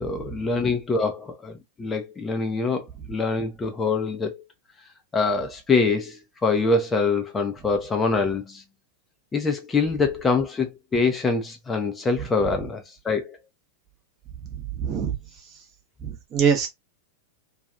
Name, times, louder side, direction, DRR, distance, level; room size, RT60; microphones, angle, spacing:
voice 1, 0.0-4.4 5.1-8.6 9.3-13.4, left 4 dB, 15° left, 0.5 m, -25 dB
voice 2, 14.5-15.1 16.0-16.7, right 7 dB, 35° right, 0.9 m, -25 dB
2.8 x 2.3 x 2.3 m
figure-of-eight pair, 90°, 0 cm